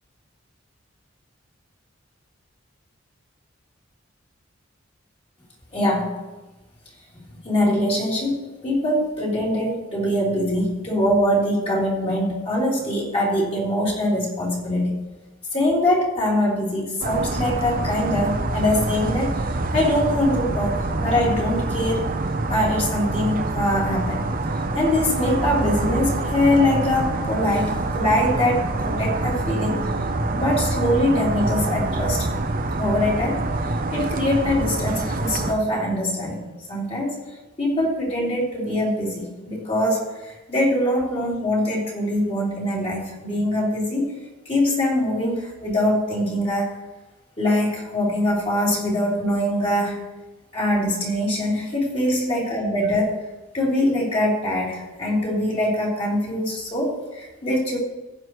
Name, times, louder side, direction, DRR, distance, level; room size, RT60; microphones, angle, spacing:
voice 1, 5.7-6.2 7.4-14.9 15.5-19.4 19.7-22.0 22.5-24.3 24.8-29.9 30.4-32.3 32.8-33.4 33.9-37.2 37.6-44.2 44.5-46.7 47.4-50.0 50.5-53.2 53.5-57.8, left 1 dB, 30° left, -5 dB, 3.6 m, -23 dB
sound 1, 17.0-35.5, right 2 dB, 45° right, 0.8 m, -26 dB
15.5 x 9.6 x 3.2 m, 1.1 s
head